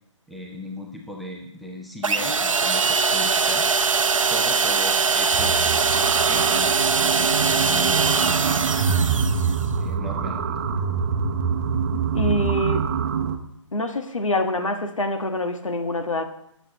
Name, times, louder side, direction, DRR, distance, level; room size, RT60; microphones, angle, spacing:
voice 1, 0.3-3.7 4.3-5.6 6.2-8.8 9.7-10.8, left 1 dB, ahead, 0 dB, 0.5 m, -37 dB
sound 1, 2.0-9.7, right 5 dB, 80° right, 0.7 m, -21 dB
sound 2, 5.3-13.4, right 6 dB, 30° right, 0.8 m, -25 dB
voice 2, 12.1-12.8 13.7-16.2, left 1 dB, 80° left, 6 dB, 1.5 m, -25 dB
18.5 x 6.9 x 3.0 m, 0.75 s
figure-of-eight pair, 150°, 16 cm